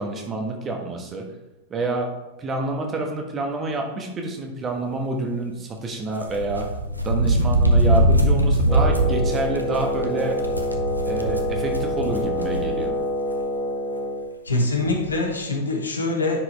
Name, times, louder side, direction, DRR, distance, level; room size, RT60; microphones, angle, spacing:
voice 1, 0.0-1.3 1.7-6.7 7.0-10.5 11.1-12.9, right 3 dB, 25° right, 2 dB, 1.3 m, -28 dB
sound 1, 6.2-12.9 13.3-13.4 14.5-14.6 14.8-15.1, right 1 dB, 90° right, 0.7 m, -22 dB
Wind instrument woodwind instrument, 8.6-14.3, left 1 dB, 20° left, 1.2 m, -27 dB
voice 2, 14.4-16.4, left 2 dB, 75° left, 2 dB, 1.3 m, -24 dB
10.0 x 4.9 x 3.3 m, 1.0 s
figure-of-eight pair, 95°, 0 cm